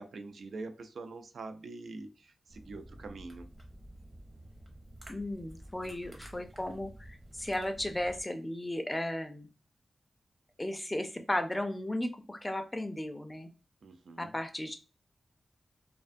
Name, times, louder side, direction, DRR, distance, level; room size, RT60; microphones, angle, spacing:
voice 1, 0.0-3.5 5.8-6.1 13.8-14.3, right 3 dB, 80° right, 7 dB, 0.3 m, -45 dB
sound 1, 2.5-8.2, right 1 dB, 30° right, 0.7 m, -51 dB
voice 2, 5.1-9.5 10.6-13.5 14.2-14.8, left 1 dB, 15° left, 6 dB, 0.4 m, -35 dB
2.4 x 2.2 x 2.5 m, 0.33 s
wide cardioid pair, 105°, 0 cm